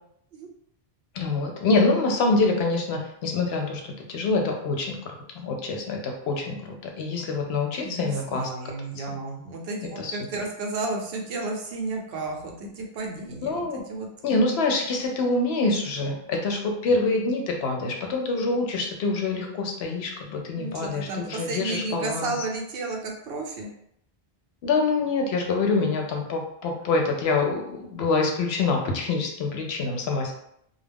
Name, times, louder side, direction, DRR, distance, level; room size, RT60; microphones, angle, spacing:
voice 1, 1.1-4.9 5.3-6.6 6.8-8.5 9.0-9.1 9.8-10.2 13.4-13.8 14.2-22.3 24.6-30.3, left 3 dB, 75° left, 2 dB, 0.8 m, -25 dB
voice 2, 7.8-14.1 20.5-23.7, right 3 dB, 70° right, 0 dB, 0.8 m, -32 dB
2.3 x 2.0 x 3.3 m, 0.73 s
omnidirectional pair, 1.1 m